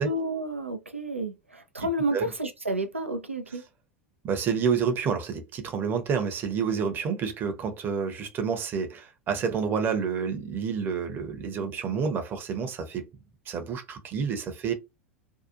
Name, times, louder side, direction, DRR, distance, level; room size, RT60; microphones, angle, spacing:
voice 1, 0.0-3.6, right 1 dB, 85° right, 0.5 m, -30 dB
voice 2, 1.8-2.3 4.2-13.1 13.5-14.7, right 6 dB, 30° right, 0.8 m, -29 dB
2.7 x 2.3 x 2.4 m
figure-of-eight pair, 85°, 7 cm